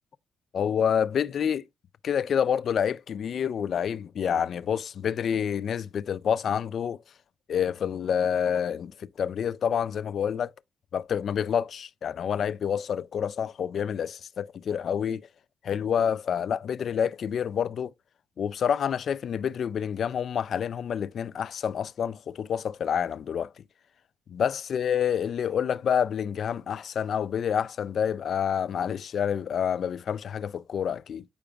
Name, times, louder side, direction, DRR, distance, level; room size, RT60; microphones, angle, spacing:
voice 1, 0.5-1.6 2.0-7.0 7.5-10.5 10.9-15.3 15.6-17.9 18.4-23.5 24.3-31.2, left 8 dB, 60° left, 0.3 m, -28 dB
8.6 x 4.7 x 2.3 m
cardioid pair, 90°, 0 cm